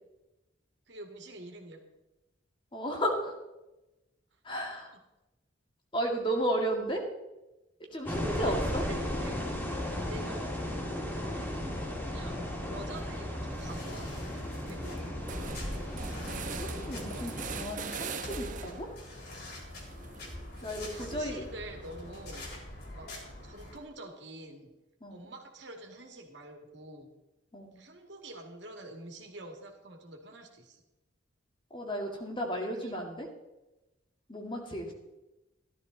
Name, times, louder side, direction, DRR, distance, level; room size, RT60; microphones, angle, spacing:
voice 1, 0.9-1.8 4.7-5.0 8.3-8.5 8.8-9.4 10.1-10.6 12.1-15.1 20.9-22.5 22.9-23.1 23.4-24.7 25.1-27.1 27.8-30.8 32.6-33.0, right 1 dB, 65° right, 3 dB, 2.4 m, -47 dB
voice 2, 2.7-3.4 4.4-4.9 5.9-7.0 7.9-8.8 16.3-18.9 20.6-21.5 25.0-25.3 27.5-27.8 31.7-33.3 34.3-34.9, right 1 dB, 25° left, 1 dB, 2.2 m, -34 dB
sound 1, 8.1-17.6, left 1 dB, 10° left, 2.5 m, -35 dB
sound 2, 11.2-23.8, left 1 dB, 55° left, 3.8 m, -44 dB
sound 3, 13.3-13.8 14.2-14.3 14.5-19.0 19.3-21.5, right 5 dB, 45° right, 0.9 m, -43 dB
14.5 x 12.5 x 4.1 m, 0.99 s
head